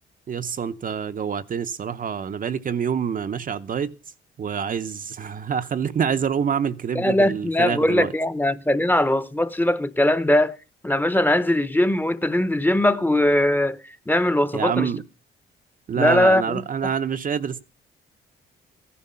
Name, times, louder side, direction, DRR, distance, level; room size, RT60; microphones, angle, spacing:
voice 1, 0.3-3.9 4.4-8.1 14.5-15.0 15.9-17.6, right 7 dB, 45° right, 0.7 m, -26 dB
voice 2, 6.9-10.6 10.8-14.9 16.0-16.6, left 1 dB, 10° left, 0.8 m, -20 dB
15.0 x 11.0 x 5.6 m
cardioid pair, 90°, 20 cm